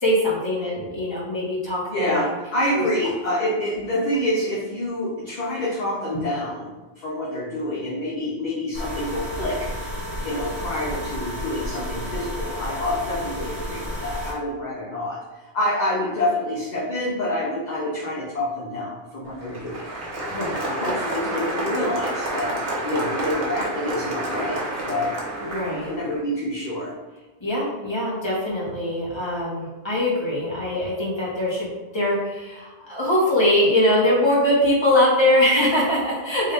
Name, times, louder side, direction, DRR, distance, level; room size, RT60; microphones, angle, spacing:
voice 1, 0.0-2.2 2.7-2.8 20.3-20.6 25.4-25.9 27.4-31.7 31.9-36.5, left 1 dB, 25° left, -6 dB, 1.3 m, -22 dB
voice 2, 1.9-6.7 7.0-9.7 10.2-19.8 20.5-25.2 25.7-27.0, left 1 dB, 45° left, -5 dB, 0.8 m, -27 dB
sound 1, 8.7-14.3, left 1 dB, 35° right, 1.2 m, -31 dB
Applause, 19.2-26.2, right 1 dB, 65° right, 1.1 m, -29 dB
3.9 x 2.6 x 3.3 m, 1.2 s
omnidirectional pair, 1.1 m